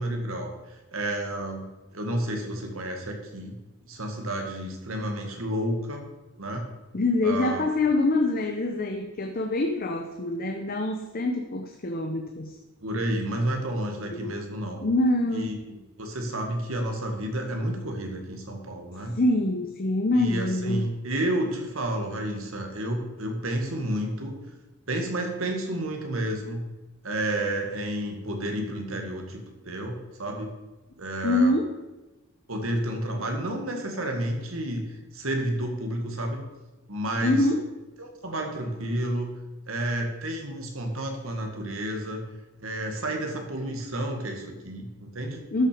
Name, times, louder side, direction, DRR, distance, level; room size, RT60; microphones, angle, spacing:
voice 1, 0.0-1.7 1.9-3.5 3.9-6.1 6.4-6.6 7.2-7.6 12.8-14.8 15.3-15.5 16.0-19.1 20.1-24.4 24.9-26.6 27.0-30.5 31.0-31.5 32.5-36.4 36.9-37.5 38.0-39.3 39.7-42.2 42.6-45.4, right 1 dB, 85° right, 3 dB, 1.9 m, -30 dB
voice 2, 6.9-12.6 14.1-14.3 14.8-15.6 19.1-20.8 31.2-31.7 37.2-37.6 45.5-45.7, left 2 dB, 45° left, 4 dB, 0.8 m, -25 dB
13.0 x 6.2 x 5.0 m, 1.1 s
head